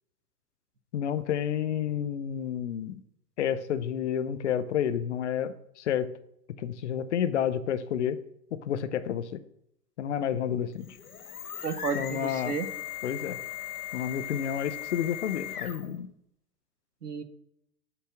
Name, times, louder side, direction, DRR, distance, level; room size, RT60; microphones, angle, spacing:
voice 1, 0.9-3.0 3.4-6.1 6.6-8.2 8.5-9.4 10.0-10.9 11.9-12.6 13.0-13.4 13.9-16.1, left 9 dB, 50° left, 12 dB, 0.7 m, -30 dB
sound 1, 10.7-16.0, left 11 dB, 70° left, 1.0 m, -38 dB
voice 2, 11.6-12.7 17.0-17.2, right 6 dB, 80° right, 12 dB, 0.9 m, -32 dB
8.8 x 4.3 x 6.1 m, 0.75 s
figure-of-eight pair, 105°, 47 cm